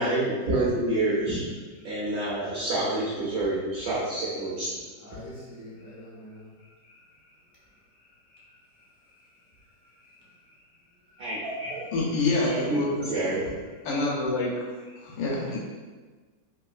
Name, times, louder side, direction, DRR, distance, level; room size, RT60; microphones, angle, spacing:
voice 1, 0.0-1.4 1.8-4.7 11.2-11.8 12.4-13.4, right 2 dB, 65° right, -7 dB, 1.0 m, -28 dB
voice 2, 5.0-7.3 8.3-8.9 9.8-10.5 11.1-11.2 14.8-15.0, left 1 dB, 65° left, -7 dB, 0.8 m, -48 dB
voice 3, 11.9-13.4 13.8-14.6 15.0-15.6, left 2 dB, 90° left, -3 dB, 1.5 m, -27 dB
3.6 x 2.3 x 2.4 m, 1.4 s
omnidirectional pair, 2.0 m